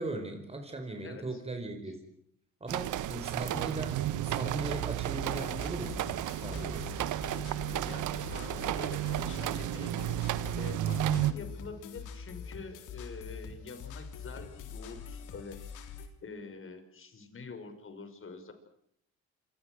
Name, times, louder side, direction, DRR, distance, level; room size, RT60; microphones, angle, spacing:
voice 1, 0.0-2.0 2.6-6.0 6.4-6.9, right 2 dB, 20° right, 5 dB, 4.8 m, -38 dB
voice 2, 1.0-1.4 7.8-10.0 10.6-15.6 16.2-18.5, left 4 dB, 45° left, 8 dB, 5.8 m, -46 dB
sound 1, 2.7-11.3, right 12 dB, 85° right, 1.4 m, -33 dB
sound 2, 5.1-16.1, left 6 dB, 90° left, 3.6 m, -44 dB
27.5 x 25.0 x 6.4 m, 0.72 s
cardioid pair, 90°, 30 cm